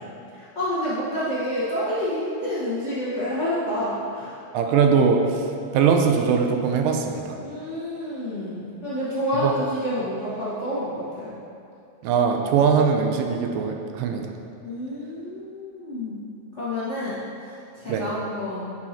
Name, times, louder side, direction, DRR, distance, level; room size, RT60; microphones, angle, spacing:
voice 1, 0.3-4.4 7.4-11.4 14.6-16.2 16.5-18.7, left 1 dB, 60° left, -12 dB, 0.7 m, -29 dB
voice 2, 4.5-5.2 5.7-7.4 9.4-9.5 12.0-14.3 17.9-18.0, right 6 dB, 90° right, 3 dB, 2.3 m, -21 dB
9.6 x 6.3 x 2.9 m, 2.6 s
omnidirectional pair, 4.0 m